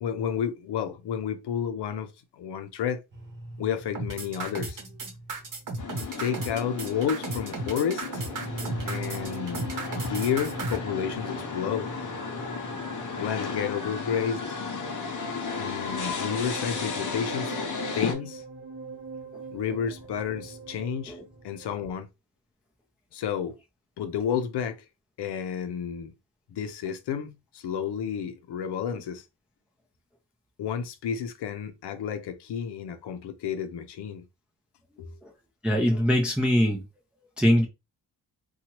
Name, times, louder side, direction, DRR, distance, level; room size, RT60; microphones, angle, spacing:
voice 1, 0.0-3.0 3.6-4.8 6.2-8.2 8.9-9.7 10.0-11.9 13.2-14.4 15.6-17.5 17.9-18.4 19.5-21.2 21.4-22.1 23.1-23.5 24.0-24.8 25.2-26.1 26.5-29.2 30.6-34.2 35.0-35.1, left 8 dB, 85° left, 0.6 m, -31 dB
sound 1, 3.1-21.9, right 2 dB, 30° right, 1.1 m, -42 dB
sound 2, 3.9-10.8, right 3 dB, 50° right, 0.9 m, -34 dB
sound 3, 5.8-18.1, left 5 dB, 50° left, 0.7 m, -34 dB
voice 2, 35.6-36.8 37.4-37.7, equal, 5° right, 0.5 m, -22 dB
2.8 x 2.3 x 2.9 m
wide cardioid pair, 125°, 40 cm